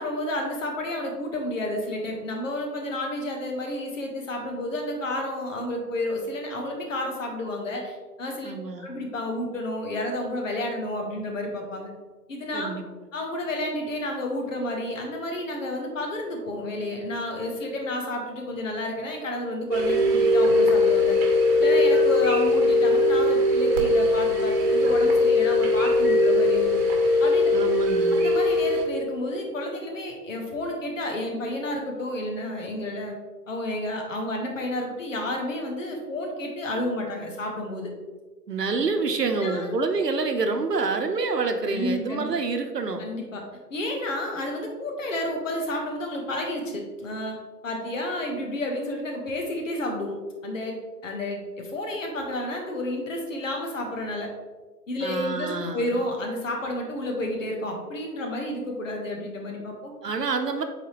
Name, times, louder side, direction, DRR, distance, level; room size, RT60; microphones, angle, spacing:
voice 1, 0.0-8.5 8.8-11.9 12.3-12.7 13.1-21.2 21.6-26.8 27.2-27.5 28.1-33.1 33.5-37.9 39.4-39.7 41.7-42.3 43.0-43.4 43.7-47.3 47.6-50.2 50.4-50.8 51.0-54.3 54.9-59.9, left 1 dB, 50° left, 2 dB, 1.5 m, -31 dB
voice 2, 8.4-8.9 12.5-12.8 27.5-28.2 38.5-43.0 55.0-56.0 60.0-60.6, right 4 dB, 80° right, 6 dB, 1.0 m, -27 dB
sound 1, 19.7-28.8, left 2 dB, 40° right, 1.2 m, -20 dB
8.2 x 4.1 x 3.0 m, 1.3 s
figure-of-eight pair, 135°, 48 cm